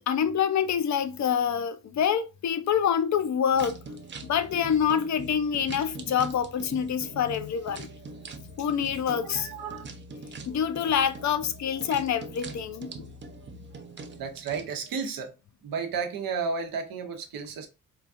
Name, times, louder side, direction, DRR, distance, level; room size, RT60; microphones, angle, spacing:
voice 1, 0.1-3.8 4.3-7.9 8.6-9.5 10.5-13.1, left 8 dB, 55° left, 0.5 m, -26 dB
sound 1, 3.5-14.9, right 2 dB, 35° right, 0.5 m, -43 dB
voice 2, 9.2-9.9 14.2-15.3 15.6-17.7, right 5 dB, 80° right, 0.7 m, -32 dB
3.8 x 2.3 x 2.5 m
cardioid pair, 100°, 34 cm